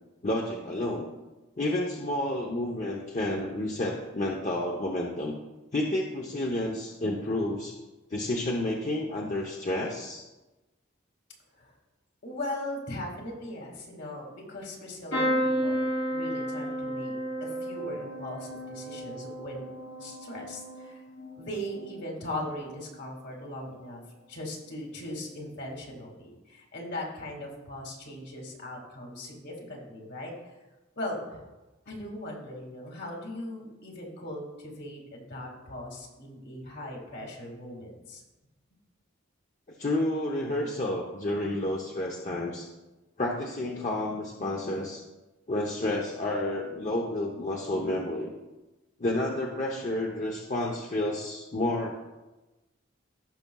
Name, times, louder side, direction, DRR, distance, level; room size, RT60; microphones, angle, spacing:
voice 1, 0.2-1.1 1.6-5.3 5.7-7.8 8.1-10.2 39.8-42.7 43.2-45.0 45.5-48.3 49.0-52.0, left 1 dB, 40° left, -1 dB, 0.8 m, -30 dB
voice 2, 12.2-17.2 17.4-19.6 20.0-21.0 21.4-24.0 24.3-30.5 31.0-31.4 31.9-38.2, left 1 dB, 55° left, 0 dB, 2.1 m, -39 dB
sound 1, 15.1-22.9 23.4-23.9 25.2-25.4 25.6-25.7, equal, 85° left, 2.6 m, -33 dB
16.5 x 6.0 x 2.3 m, 1.1 s
head